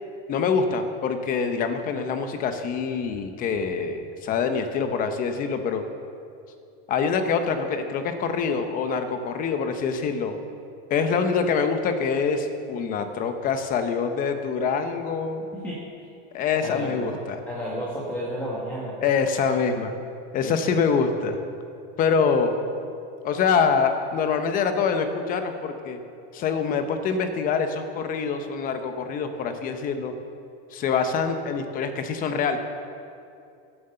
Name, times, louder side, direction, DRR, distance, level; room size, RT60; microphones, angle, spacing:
voice 1, 0.3-5.8 6.9-10.4 10.9-15.5 16.3-17.4 19.0-19.9 20.3-21.4 22.0-22.5 23.2-26.0 26.3-30.1 30.7-32.6, left 5 dB, 25° left, 7 dB, 0.8 m, -25 dB
voice 2, 16.6-17.2 17.5-18.9 20.4-20.7, equal, 5° left, -6 dB, 1.6 m, -32 dB
14.5 x 7.9 x 6.6 m, 2.6 s
supercardioid pair, 165°, 34 cm